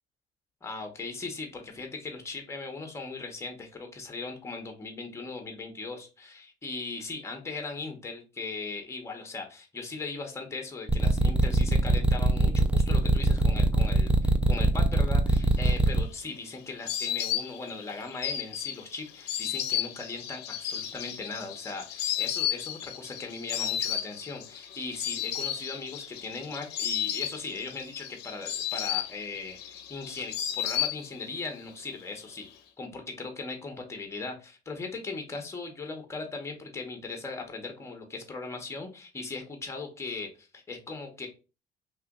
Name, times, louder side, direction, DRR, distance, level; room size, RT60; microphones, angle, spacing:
voice 1, 0.6-32.5 32.8-41.3, left 3 dB, 15° left, 4 dB, 0.8 m, -39 dB
sound 1, 10.9-16.0, right 2 dB, 5° right, 0.3 m, -22 dB
Insect, 15.7-31.4 31.7-32.5, left 10 dB, 85° left, 0.5 m, -33 dB
2.9 x 2.4 x 3.6 m, 0.31 s
cardioid pair, 110°, 17 cm